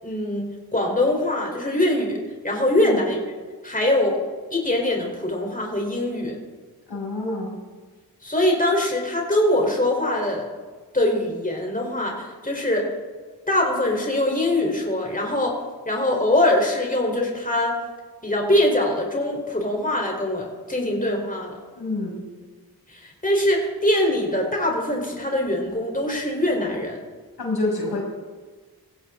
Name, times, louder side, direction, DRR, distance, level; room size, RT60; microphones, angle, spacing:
voice 1, 0.0-3.3 3.6-4.2 4.5-6.4 8.2-10.5 10.9-12.9 13.5-15.6 15.9-17.8 18.2-21.6 22.9-27.0, left 1 dB, 20° left, 0 dB, 4.4 m, -23 dB
voice 2, 6.9-7.6 21.8-22.2 27.4-28.0, left 2 dB, 90° left, -3 dB, 6.3 m, -27 dB
19.0 x 15.5 x 3.9 m, 1.4 s
cardioid pair, 50°, 38 cm